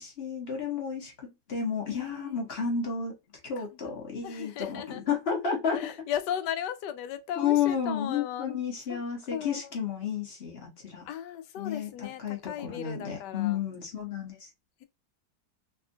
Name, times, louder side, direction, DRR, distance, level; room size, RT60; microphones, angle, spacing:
voice 1, 0.0-3.1 3.4-5.9 7.4-11.0 11.6-14.5, left 7 dB, 45° left, 1.0 m, -31 dB
voice 2, 1.9-2.4 3.6-3.9 4.2-5.0 5.7-8.6 8.9-9.0 9.3-9.8 11.0-13.6, left 10 dB, 85° left, 1.2 m, -36 dB
3.5 x 2.4 x 2.5 m
omnidirectional pair, 1.8 m